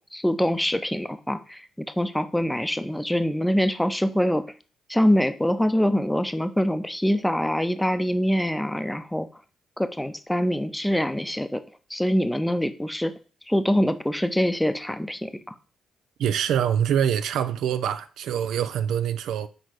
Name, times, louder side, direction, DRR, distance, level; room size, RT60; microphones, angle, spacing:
voice 1, 0.0-4.4 4.9-9.3 9.8-11.6 11.9-13.1 13.5-15.5, equal, 5° left, 0.6 m, -24 dB
voice 2, 16.2-19.5, right 9 dB, 70° right, 0.3 m, -25 dB
4.8 x 4.5 x 4.5 m
hypercardioid pair, 40°, 0 cm